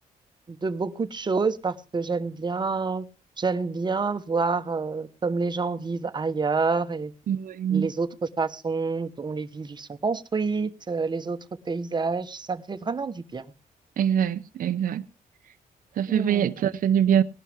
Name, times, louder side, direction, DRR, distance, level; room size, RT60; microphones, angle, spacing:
voice 1, 0.5-3.0 3.4-7.1 7.7-8.1 8.4-11.4 11.7-13.4 16.1-16.5, right 4 dB, 30° right, 1.1 m, -28 dB
voice 2, 7.3-7.9 14.0-15.0 16.0-17.2, right 9 dB, 65° right, 0.6 m, -23 dB
19.0 x 11.0 x 3.5 m
cardioid pair, 115°, 15 cm